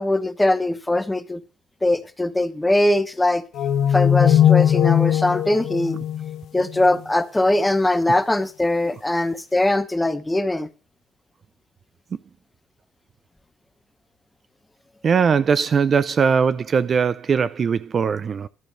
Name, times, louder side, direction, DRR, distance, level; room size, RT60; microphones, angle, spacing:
voice 1, 0.0-1.4 1.8-3.4 3.9-6.0 6.5-10.7, left 1 dB, 10° left, 0.9 m, -21 dB
sound 1, 3.6-7.0, left 10 dB, 70° left, 1.0 m, -19 dB
voice 2, 15.0-18.5, right 6 dB, 40° right, 0.4 m, -20 dB
12.0 x 5.1 x 7.6 m
cardioid pair, 120°, 0 cm